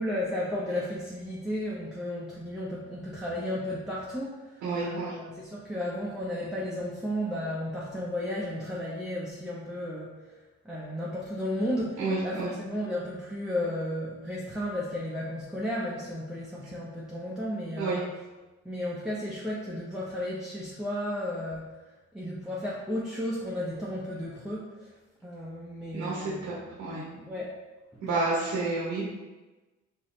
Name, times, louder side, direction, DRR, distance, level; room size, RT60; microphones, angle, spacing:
voice 1, 0.0-4.4 4.8-10.2 10.6-18.0 18.6-21.7 22.1-24.7 25.2-27.5, left 1 dB, ahead, -6 dB, 0.7 m, -33 dB
voice 2, 4.6-5.2 12.0-12.5 17.8-18.0 25.9-27.1 28.0-29.1, right 3 dB, 85° right, -5 dB, 1.1 m, -30 dB
4.7 x 2.7 x 3.1 m, 1.2 s
cardioid pair, 90°, 30 cm